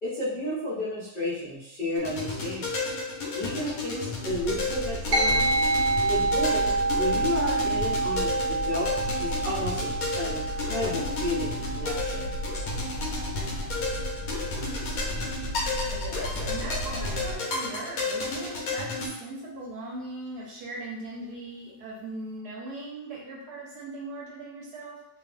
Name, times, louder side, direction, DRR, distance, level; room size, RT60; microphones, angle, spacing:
voice 1, 0.0-2.7 3.4-5.6 6.1-8.9 9.2-12.3, left 1 dB, 50° left, -12 dB, 0.6 m, -32 dB
sound 1, 2.0-19.1, left 3 dB, 65° left, 0.9 m, -33 dB
sound 2, 4.3-17.4, equal, 85° left, 1.3 m, -35 dB
sound 3, 5.1-14.8, right 3 dB, 90° right, 0.6 m, -29 dB
voice 2, 15.9-25.0, right 2 dB, 70° right, -4 dB, 1.1 m, -39 dB
2.7 x 2.5 x 2.4 m, 0.82 s
omnidirectional pair, 1.9 m